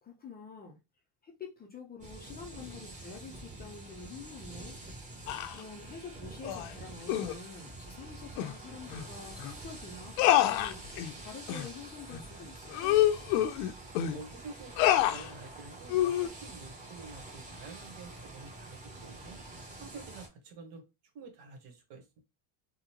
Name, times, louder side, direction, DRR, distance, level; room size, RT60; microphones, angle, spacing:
voice 1, 0.0-0.8 1.2-4.8 5.5-10.8 11.2-13.0, left 5 dB, 20° left, 0.4 m, -47 dB
sound 1, 2.0-20.3, right 2 dB, 15° right, 0.9 m, -47 dB
sound 2, 5.3-5.6 6.4-6.7 7.1-7.3 8.4-8.5 8.9-9.0 9.4-9.5 10.2-11.1 11.5-11.7 12.1-12.2 12.7-14.2 14.8-15.3 15.9-16.3, left 13 dB, 80° left, 0.6 m, -27 dB
voice 2, 14.1-19.4 19.8-20.8 21.1-22.2, right 4 dB, 75° right, 1.3 m, -49 dB
3.8 x 2.1 x 2.9 m
cardioid pair, 130°, 49 cm